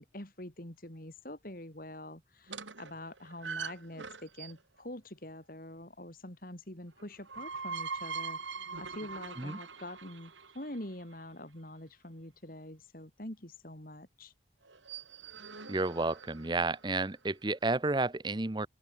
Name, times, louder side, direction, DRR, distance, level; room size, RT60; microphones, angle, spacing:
voice 1, 0.0-14.3, left 1 dB, 50° left, 3.5 m, -45 dB
sound 1, 2.5-4.8 7.0-11.0 14.7-16.9, right 5 dB, 90° right, 3.8 m, -42 dB
voice 2, 15.7-18.7, right 2 dB, 25° right, 0.8 m, -31 dB
open air
head